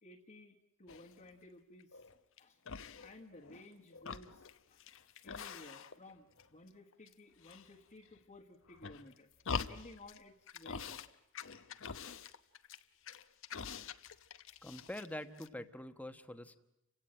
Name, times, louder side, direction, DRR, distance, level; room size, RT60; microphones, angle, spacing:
voice 1, 0.0-2.1 2.4-2.6 3.0-11.0, left 2 dB, 40° left, -3 dB, 1.6 m, -56 dB
sound 1, 0.9-1.3 1.8-2.4 2.7-3.6 3.9-6.1 6.4-7.1 7.4-8.2 8.7-10.2 10.5-11.1 11.3-15.1 15.4-15.5, left 6 dB, 65° left, 1.0 m, -45 dB
voice 2, 14.6-16.6, left 1 dB, 5° left, 9 dB, 1.2 m, -45 dB
30.0 x 17.0 x 8.9 m, 0.88 s
head